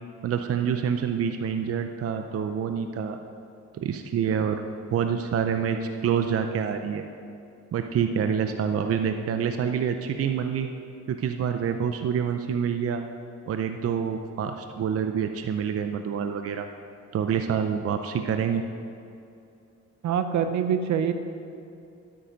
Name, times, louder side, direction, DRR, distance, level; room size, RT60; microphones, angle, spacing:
voice 1, 0.2-3.2 3.8-4.6 4.9-7.0 7.7-10.7 11.1-13.0 13.5-16.7 17.1-18.6, right 7 dB, 50° right, 7 dB, 0.7 m, -27 dB
voice 2, 20.0-21.1, right 8 dB, 70° right, 9 dB, 0.9 m, -24 dB
12.0 x 8.7 x 5.2 m, 2.6 s
cardioid pair, 90°, 30 cm